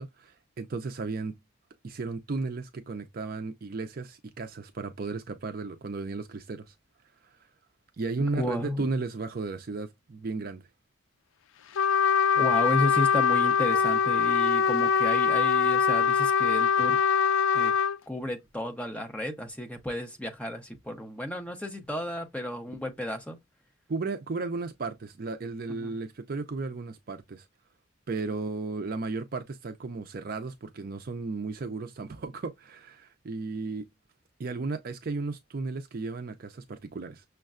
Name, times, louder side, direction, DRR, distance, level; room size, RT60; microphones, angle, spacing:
voice 1, 0.0-1.4 1.8-6.7 8.0-10.6 23.9-27.5 28.1-33.9 34.4-37.2, right 3 dB, 45° right, 0.4 m, -34 dB
voice 2, 8.2-8.9 12.4-17.0 17.5-17.7 18.1-23.4 25.7-26.0, left 1 dB, 5° left, 0.7 m, -33 dB
Trumpet, 11.8-18.0, left 6 dB, 70° left, 0.4 m, -23 dB
6.3 x 2.2 x 2.4 m
head